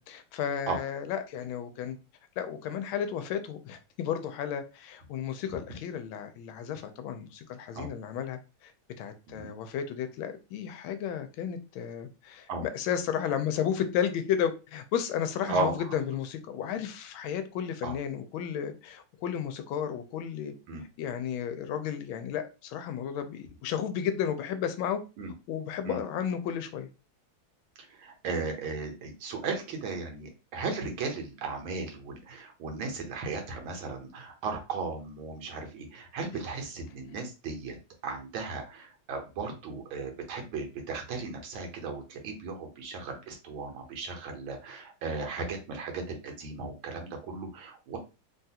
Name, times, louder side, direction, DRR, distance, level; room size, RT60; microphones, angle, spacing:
voice 1, 0.0-2.0 2.4-8.7 9.0-20.5 21.0-25.0 25.5-26.9, left 8 dB, 85° left, 1.4 m, -33 dB
voice 2, 15.5-15.9 17.8-18.0 20.7-20.8 25.2-25.3 25.9-26.0 27.9-37.8 38.0-48.0, right 4 dB, 80° right, 1.6 m, -36 dB
3.6 x 2.3 x 2.7 m
omnidirectional pair, 2.2 m